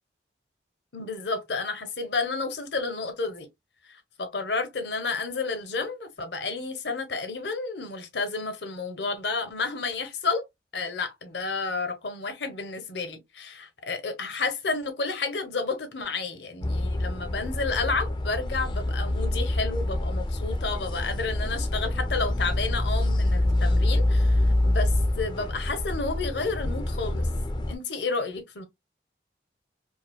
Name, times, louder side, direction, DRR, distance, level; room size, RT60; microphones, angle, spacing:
voice 1, 0.9-3.5 3.9-10.5 10.7-27.3 27.7-28.7, left 4 dB, 85° left, 0.9 m, -31 dB
sound 1, 16.6-27.7, left 1 dB, 25° left, 0.4 m, -26 dB
4.6 x 2.1 x 2.2 m
head